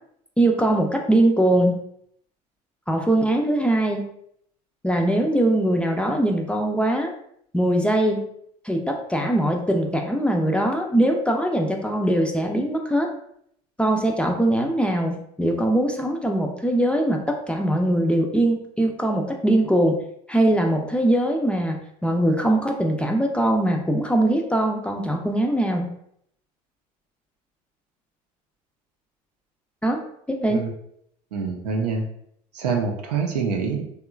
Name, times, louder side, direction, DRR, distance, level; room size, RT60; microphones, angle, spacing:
voice 1, 0.4-1.8 2.9-4.0 4.8-7.1 7.5-8.2 8.6-13.1 13.8-20.0 20.3-21.8 22.0-25.9 29.8-30.0 30.3-30.6, right 1 dB, 5° left, 2 dB, 0.4 m, -21 dB
voice 2, 31.3-32.0 32.5-33.8, right 5 dB, 90° right, 2 dB, 0.5 m, -25 dB
2.9 x 2.2 x 2.3 m, 0.70 s
hypercardioid pair, 75°, 20 cm